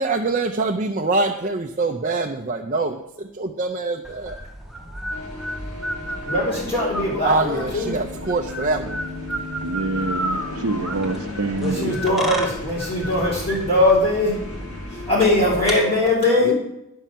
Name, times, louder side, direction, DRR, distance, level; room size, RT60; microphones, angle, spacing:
voice 1, 0.0-4.4 7.2-9.0 16.4-16.5, right 3 dB, 35° right, 2 dB, 0.5 m, -24 dB
sound 1, 4.0-15.8, right 1 dB, ahead, 1.1 m, -33 dB
sound 2, 5.1-16.0, left 3 dB, 75° left, 2.3 m, -36 dB
voice 2, 6.3-7.9 11.6-14.4 15.1-16.5, left 2 dB, 25° left, -5 dB, 3.9 m, -20 dB
voice 3, 9.6-11.9, right 3 dB, 80° right, 2 dB, 0.6 m, -26 dB
10.5 x 5.5 x 7.5 m, 0.84 s
head